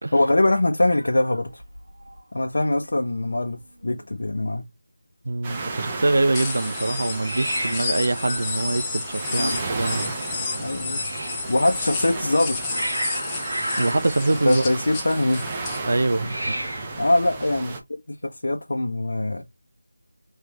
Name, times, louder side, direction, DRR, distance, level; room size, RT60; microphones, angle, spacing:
voice 1, 0.1-1.6 2.3-4.6 9.3-9.6 10.5-11.0 11.5-12.8 14.4-15.4 17.0-17.7 18.1-19.4, left 1 dB, 70° left, 0.7 m, -23 dB
Hiss, 0.9-2.2 2.5-2.9 3.2-3.3 3.5-4.2 7.2-11.5 12.2-15.2 16.1-17.1, right 1 dB, 80° right, 1.2 m, -34 dB
voice 2, 5.3-10.0 13.8-14.6 15.9-16.7, right 2 dB, 60° right, 0.3 m, -24 dB
sound 1, 5.4-17.8, right 3 dB, 20° right, 0.7 m, -34 dB
sound 2, 6.3-15.8, left 4 dB, 15° left, 0.6 m, -32 dB
3.2 x 3.0 x 3.6 m
figure-of-eight pair, 165°, 0 cm